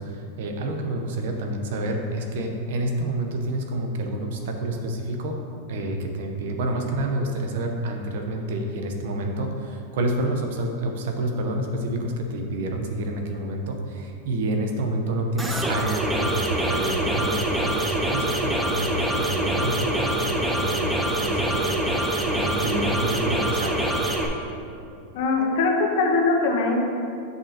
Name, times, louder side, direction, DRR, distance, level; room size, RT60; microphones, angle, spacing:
voice 1, 0.0-5.3 5.7-23.8, right 1 dB, 65° right, 3 dB, 0.8 m, -28 dB
sound 1, 15.4-24.3, right 1 dB, 10° right, 0.5 m, -25 dB
voice 2, 25.1-26.8, left 3 dB, 60° left, 1 dB, 0.9 m, -21 dB
7.7 x 5.3 x 2.8 m, 2.6 s
supercardioid pair, 160°, 0 cm